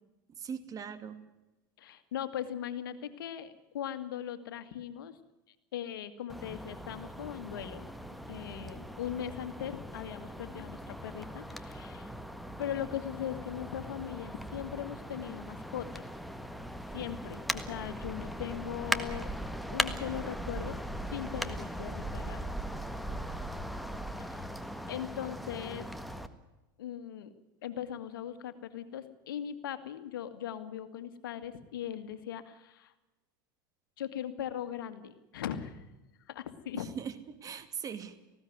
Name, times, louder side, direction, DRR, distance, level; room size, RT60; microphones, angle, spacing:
voice 1, 0.4-1.2 36.7-38.1, right 7 dB, 30° right, 10 dB, 2.3 m, -40 dB
voice 2, 1.8-5.2 5.7-7.9 8.3-12.1 12.6-16.0 16.9-19.3 19.7-20.8 21.1-22.4 24.2-24.4 24.9-25.9 26.8-27.3 27.6-32.9 34.0-35.8 36.3-36.9, left 10 dB, 80° left, 10 dB, 2.0 m, -39 dB
sound 1, 6.3-26.3, equal, ahead, 1.6 m, -39 dB
19.0 x 16.0 x 9.5 m, 1.0 s
hypercardioid pair, 100°, 11 cm